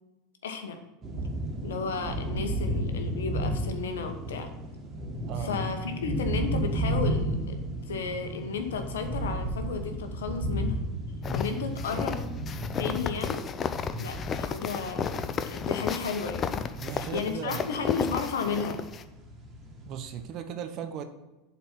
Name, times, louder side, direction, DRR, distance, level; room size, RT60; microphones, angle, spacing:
voice 1, 0.4-0.8 1.6-4.5 5.4-7.6 7.9-10.8 11.3-12.2 12.8-13.4 14.0-16.7 16.9-18.8, left 5 dB, 85° left, 6 dB, 1.1 m, -33 dB
sound 1, 1.0-20.2, right 1 dB, 35° right, 2.2 m, -34 dB
voice 2, 5.3-5.7 16.8-17.8 19.8-21.0, right 8 dB, 50° right, 8 dB, 0.9 m, -37 dB
sound 2, 11.2-19.0, left 6 dB, 35° left, 0.6 m, -33 dB
7.7 x 4.3 x 5.8 m, 1.1 s
hypercardioid pair, 100°, 0 cm